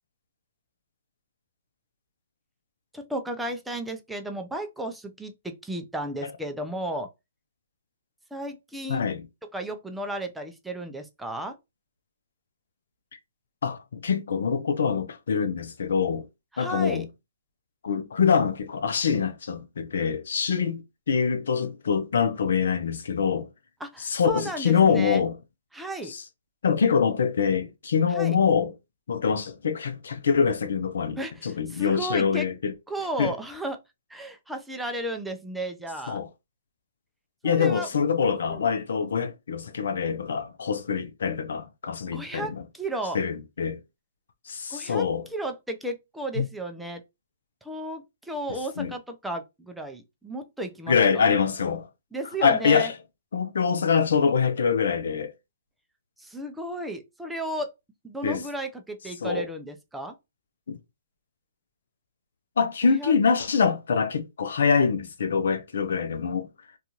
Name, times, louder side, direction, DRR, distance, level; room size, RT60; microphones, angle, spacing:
voice 1, 2.9-7.1 8.3-9.1 9.5-11.6 16.5-17.0 23.8-25.3 25.7-26.1 28.1-28.4 31.2-32.5 32.9-33.8 34.1-36.2 37.4-37.9 38.5-38.7 42.1-43.2 44.7-45.1 45.3-47.0 47.6-51.3 52.1-52.9 56.2-57.7 58.0-60.1 62.8-63.1, right 1 dB, 5° right, 0.4 m, -34 dB
voice 2, 8.9-9.2 13.6-16.2 16.6-17.1 17.8-20.8 21.1-23.5 24.0-25.3 26.1-26.2 26.6-28.7 29.1-32.7 33.2-33.3 36.1-36.3 37.4-42.6 43.1-43.8 44.5-45.2 46.4-46.5 48.8-48.9 50.9-51.9 52.4-52.9 53.3-55.3 58.2-58.4 59.2-59.5 60.7-60.8 62.6-66.5, left 6 dB, 75° left, 0.5 m, -24 dB
2.5 x 2.4 x 2.9 m
hypercardioid pair, 140°, 0 cm